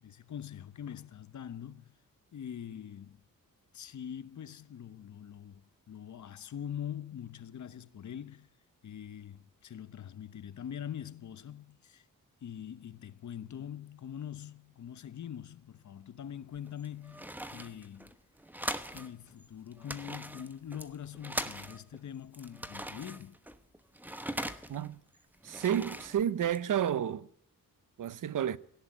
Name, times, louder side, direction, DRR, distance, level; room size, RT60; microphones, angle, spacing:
voice 1, 0.0-1.9 2.3-3.2 3.7-5.6 5.9-8.5 8.8-12.1 12.4-17.3 17.5-18.1 18.9-23.4, left 9 dB, 60° left, 1.0 m, -43 dB
sound 1, 16.5-19.1 19.4-19.5 19.7-22.0 22.3-24.9 25.3-26.9, right 1 dB, 5° right, 1.1 m, -41 dB
voice 2, 25.4-27.3 28.0-28.6, right 10 dB, 65° right, 0.8 m, -31 dB
18.0 x 16.5 x 10.0 m
wide cardioid pair, 175°, 34 cm